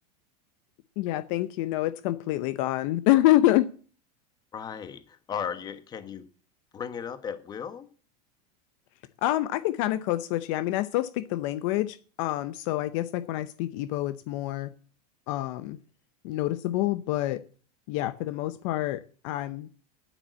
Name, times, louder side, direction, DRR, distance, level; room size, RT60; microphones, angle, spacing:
voice 1, 1.0-3.7 9.2-14.7 15.3-15.8 16.2-17.4 17.9-19.7, left 15 dB, 50° left, 13 dB, 0.7 m, -27 dB
voice 2, 4.5-6.3 6.7-7.9, left 7 dB, 20° left, 12 dB, 1.1 m, -36 dB
9.1 x 8.4 x 8.1 m, 0.40 s
supercardioid pair, 160°, 21 cm